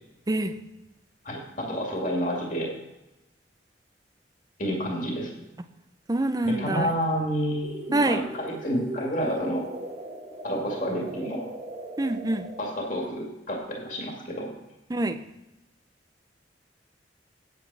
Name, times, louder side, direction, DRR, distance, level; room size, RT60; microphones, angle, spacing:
voice 1, 1.2-2.7 4.6-5.3 6.4-9.7 10.4-11.5 12.6-14.5, equal, 45° left, -1 dB, 2.1 m, -29 dB
voice 2, 6.1-6.9 7.9-8.2 12.0-12.5 14.9-15.2, right 2 dB, 20° right, 10 dB, 0.6 m, -25 dB
sound 1, 7.6-12.8, right 1 dB, 35° right, 1.5 m, -39 dB
9.1 x 8.5 x 4.7 m, 0.97 s
head